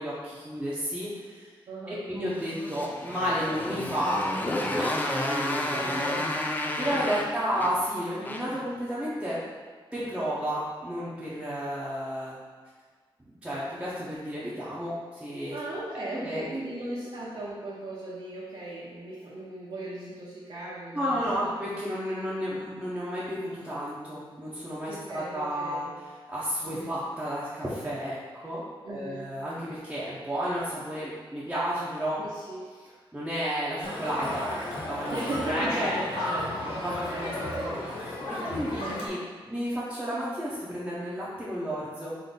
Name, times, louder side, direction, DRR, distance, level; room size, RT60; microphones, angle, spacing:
voice 1, 0.0-1.5 1.9-4.2 4.6-6.2 6.5-9.4 9.9-12.4 13.3-15.6 16.0-16.8 20.9-25.9 26.3-32.2 33.1-34.5 34.8-35.9 36.2-36.3 36.7-36.9 37.2-37.3 37.6-37.7 38.3-39.2 39.5-42.2, equal, 10° right, -9 dB, 0.6 m, -32 dB
voice 2, 1.7-2.1 5.7-6.3 6.8-7.3 15.5-21.5 24.8-26.0 26.6-27.0 28.8-29.3 32.2-32.7 35.1-37.9 38.6-39.1, right 2 dB, 65° right, -8 dB, 0.7 m, -38 dB
Motorcycle, 2.3-8.7, left 1 dB, 20° left, 0.3 m, -31 dB
Crowd, 33.8-39.1, left 1 dB, 85° left, 0.9 m, -33 dB
3.7 x 2.5 x 3.9 m, 1.6 s
wide cardioid pair, 140°, 10 cm